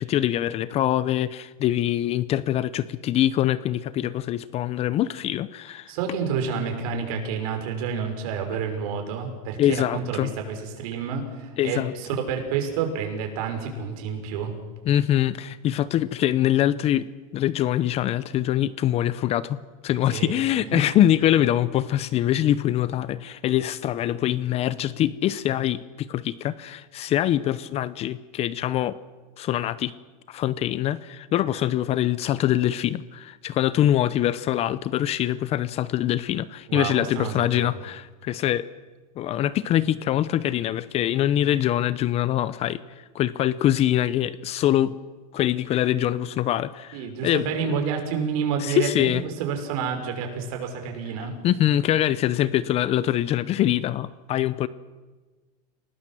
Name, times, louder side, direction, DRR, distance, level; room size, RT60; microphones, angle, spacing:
voice 1, 0.0-5.9 9.6-10.3 11.6-11.9 14.9-17.1 17.3-29.0 29.4-29.9 30.3-38.7 39.2-42.8 43.1-44.9 45.3-47.7 48.6-49.2 51.4-54.7, left 12 dB, 35° left, 16 dB, 0.7 m, -24 dB
voice 2, 5.9-9.6 9.9-14.5 20.1-20.4 20.7-20.8 36.7-37.7 46.9-51.3, right 6 dB, 65° right, 4 dB, 6.1 m, -29 dB
28.5 x 19.0 x 7.6 m, 1.3 s
supercardioid pair, 145°, 19 cm